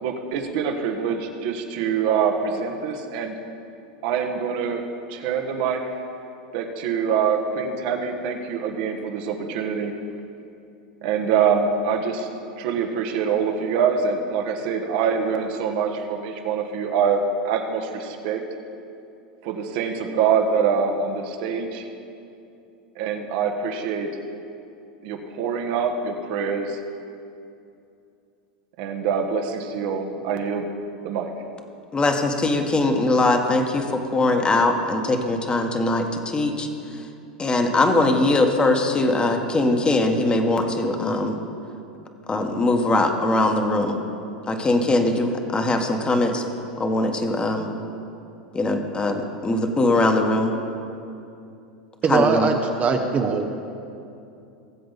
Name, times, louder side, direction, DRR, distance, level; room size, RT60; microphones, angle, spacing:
voice 1, 0.0-3.3 4.0-5.9 6.5-9.9 11.0-12.3 12.6-18.4 19.4-21.9 22.9-24.2 25.0-26.8 28.8-30.7 31.0-31.3, right 6 dB, 60° right, 4 dB, 1.4 m, -25 dB
voice 2, 31.9-36.7 37.4-41.3 42.3-44.0 44.5-46.4 46.8-47.7 48.5-50.5 52.1-52.5, left 2 dB, 20° left, 4 dB, 1.5 m, -21 dB
voice 3, 52.0-53.7, right 5 dB, 30° right, 4 dB, 0.9 m, -22 dB
19.5 x 7.7 x 4.1 m, 2.7 s
hypercardioid pair, 100°, 5 cm